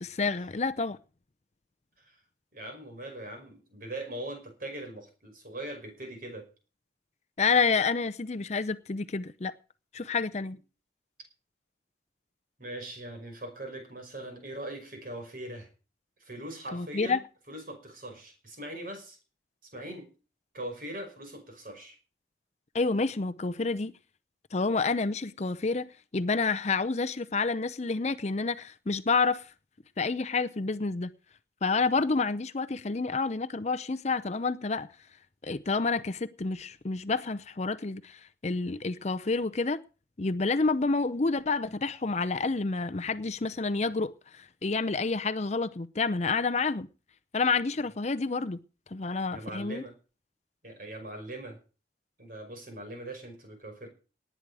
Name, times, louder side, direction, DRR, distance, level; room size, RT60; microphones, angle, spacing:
voice 1, 0.0-1.0 7.4-9.5 9.9-10.6 16.7-17.2 22.7-23.9 24.5-29.5 30.0-31.1 31.6-34.9 35.4-39.8 40.2-46.9 47.3-48.6 48.9-49.8, left 4 dB, 40° left, 0.6 m, -29 dB
voice 2, 2.5-6.5 12.6-15.7 16.2-17.2 17.5-19.2 19.7-20.1 20.5-22.0 49.3-49.9 50.6-51.6 52.2-53.9, right 1 dB, 50° right, 5.6 m, -41 dB
19.0 x 9.2 x 4.9 m
head